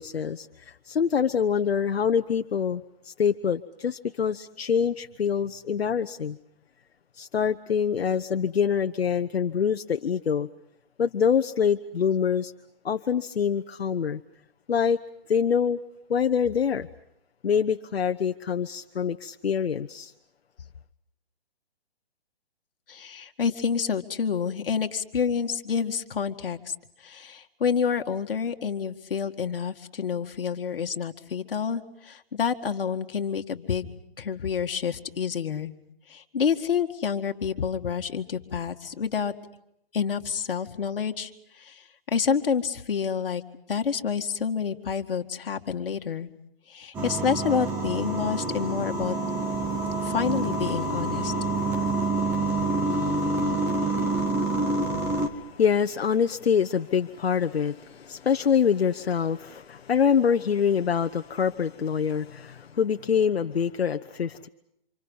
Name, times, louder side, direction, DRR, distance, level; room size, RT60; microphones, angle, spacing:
voice 1, 0.0-6.4 7.2-10.5 11.0-12.5 12.8-14.2 14.7-15.0 15.3-15.8 16.1-16.9 17.4-20.1 55.1-64.5, left 7 dB, 90° left, 7 dB, 1.0 m, -25 dB
voice 2, 22.9-26.7 27.0-33.9 34.2-35.7 36.1-39.3 39.9-41.3 41.6-41.8 42.1-43.4 43.7-46.3 46.7-49.2 50.0-51.3, left 6 dB, 65° left, 5 dB, 2.1 m, -28 dB
sound 1, 46.9-55.3, right 2 dB, 5° right, 0.9 m, -27 dB
29.0 x 27.0 x 5.5 m, 0.77 s
hypercardioid pair, 165°, 30 cm